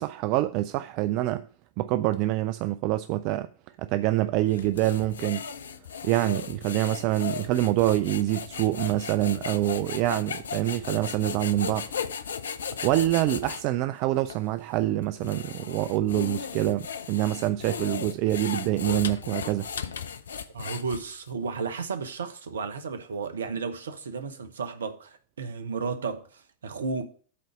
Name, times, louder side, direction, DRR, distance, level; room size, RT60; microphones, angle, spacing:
voice 1, 0.0-1.5 1.8-3.5 3.8-5.4 6.0-11.9 12.8-19.7, right 15 dB, 45° right, 0.3 m, -26 dB
sound 1, 4.5-13.6 14.3-14.4 15.0-21.3, left 7 dB, 70° left, 0.5 m, -36 dB
voice 2, 20.5-27.1, right 5 dB, 70° right, 0.9 m, -33 dB
8.5 x 3.9 x 6.8 m
figure-of-eight pair, 90°, 0 cm